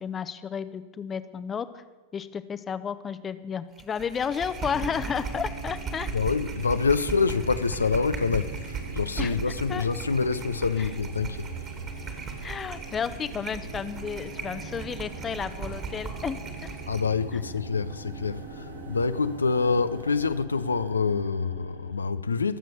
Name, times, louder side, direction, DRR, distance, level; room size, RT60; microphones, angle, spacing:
voice 1, 0.0-1.8 2.1-6.1 9.2-9.3 9.7-9.8 12.4-16.7, left 7 dB, 20° left, 0.8 m, -32 dB
sound 1, 3.8-17.1, right 5 dB, 30° right, 2.4 m, -38 dB
sound 2, 4.6-22.1, right 3 dB, 60° right, 4.8 m, -43 dB
voice 2, 6.1-11.7 12.0-12.1 16.9-22.6, left 4 dB, 75° left, 0.5 m, -26 dB
sound 3, 6.1-20.4, right 2 dB, 85° right, 1.9 m, -45 dB
22.5 x 7.6 x 6.9 m
figure-of-eight pair, 90°, 0 cm